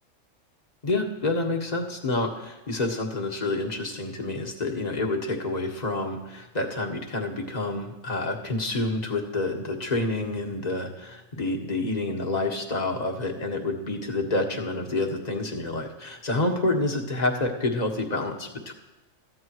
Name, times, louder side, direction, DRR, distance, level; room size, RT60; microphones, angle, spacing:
voice 1, 0.8-18.7, left 2 dB, 30° left, 1 dB, 1.8 m, -28 dB
23.0 x 15.0 x 3.2 m, 1.1 s
omnidirectional pair, 1.4 m